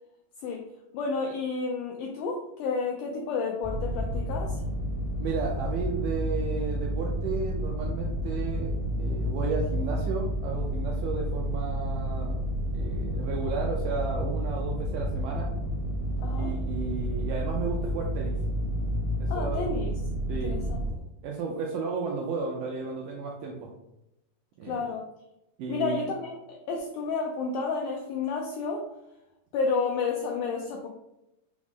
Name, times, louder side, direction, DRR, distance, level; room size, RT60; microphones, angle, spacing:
voice 1, 0.9-4.6 16.2-16.6 19.3-19.9 20.3-20.9 24.6-25.1 25.7-28.9 29.5-30.9, left 4 dB, 85° left, 1 dB, 1.8 m, -31 dB
sound 1, 3.6-20.9, equal, 60° right, 0.7 m, -30 dB
voice 2, 5.2-8.7 9.0-12.4 12.7-15.5 16.3-18.4 19.2-19.6 20.3-20.6 21.2-23.7 24.6-24.8 25.6-26.1, right 4 dB, 85° right, 0 dB, 1.9 m, -33 dB
6.0 x 2.0 x 3.5 m, 0.87 s
omnidirectional pair, 4.2 m